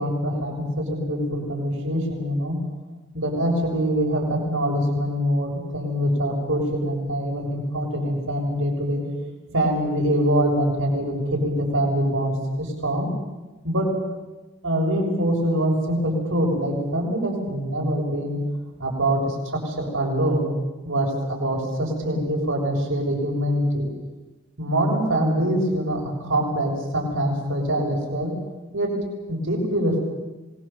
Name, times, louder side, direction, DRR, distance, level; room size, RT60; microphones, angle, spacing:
voice 1, 0.0-2.6 3.1-9.0 9.5-13.1 13.6-13.9 14.6-18.4 18.8-20.5 20.9-23.9 24.6-28.3 28.7-28.9 29.3-30.0, equal, 90° right, -1 dB, 6.9 m, -24 dB
26.5 x 20.5 x 7.4 m, 1.2 s
head